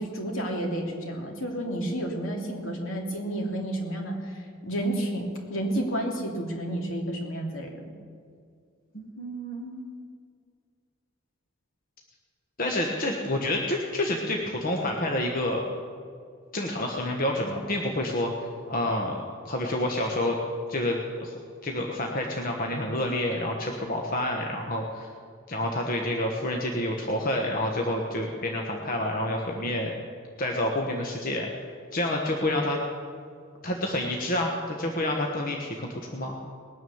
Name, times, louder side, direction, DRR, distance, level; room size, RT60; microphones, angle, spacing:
voice 1, 0.0-8.0, right 1 dB, 70° left, 1 dB, 3.0 m, -31 dB
voice 2, 8.9-10.0 12.6-15.6 16.5-20.4 20.7-21.3 21.6-25.1 25.5-29.9 30.4-31.5 31.9-32.8 33.6-36.4, left 1 dB, 45° left, 0 dB, 1.3 m, -28 dB
20.0 x 9.7 x 7.2 m, 2.2 s
head